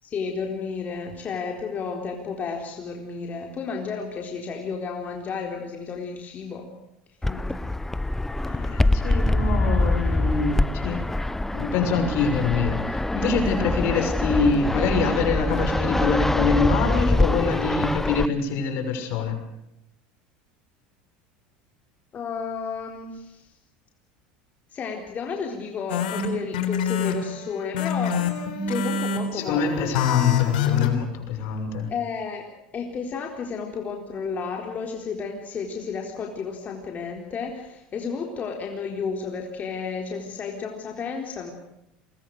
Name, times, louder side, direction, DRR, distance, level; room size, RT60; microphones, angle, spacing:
voice 1, 0.0-6.7 7.3-7.7 22.1-23.5 24.7-28.2 28.7-30.0 30.8-31.3 31.9-32.5 32.7-41.5, left 5 dB, 35° left, 1 dB, 4.0 m, -32 dB
Fixed-wing aircraft airplane, 7.2-18.3, left 2 dB, 10° left, 0.9 m, -24 dB
voice 2, 8.4-11.0 11.4-19.4 29.3-31.9, left 5 dB, 60° left, 6 dB, 6.3 m, -25 dB
sound 1, 25.9-30.9, left 7 dB, 85° left, 3.8 m, -26 dB
28.0 x 23.0 x 6.6 m, 0.81 s
supercardioid pair, 95°, 4 cm